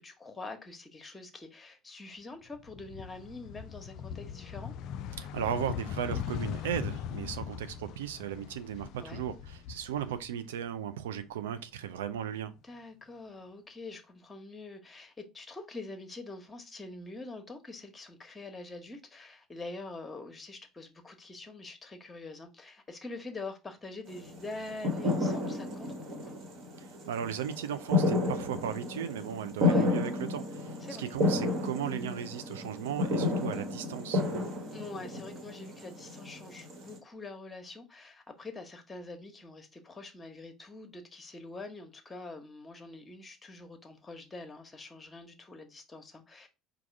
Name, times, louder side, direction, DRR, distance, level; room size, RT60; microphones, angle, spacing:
voice 1, 0.0-4.7 9.0-9.2 12.6-26.4 29.6-29.9 30.8-31.1 34.7-46.5, left 3 dB, 20° left, 1.1 m, -45 dB
sound 1, 2.5-10.7 11.0-12.2, left 9 dB, 55° left, 0.3 m, -40 dB
voice 2, 5.2-12.5 26.8-34.2, right 9 dB, 75° right, 0.5 m, -36 dB
sound 2, 24.1-37.0, left 2 dB, 55° right, 1.5 m, -32 dB
4.7 x 2.4 x 4.6 m
figure-of-eight pair, 65°, 0 cm